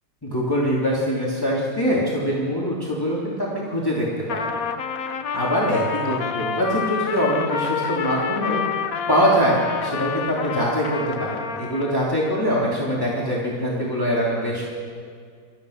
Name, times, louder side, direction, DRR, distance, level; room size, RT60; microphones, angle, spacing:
voice 1, 0.2-4.4 5.3-8.8 9.1-14.6, equal, 10° left, -6 dB, 3.2 m, -23 dB
Trumpet, 4.2-12.1, left 6 dB, 55° left, 1.3 m, -28 dB
28.5 x 14.0 x 6.7 m, 2.2 s
omnidirectional pair, 1.9 m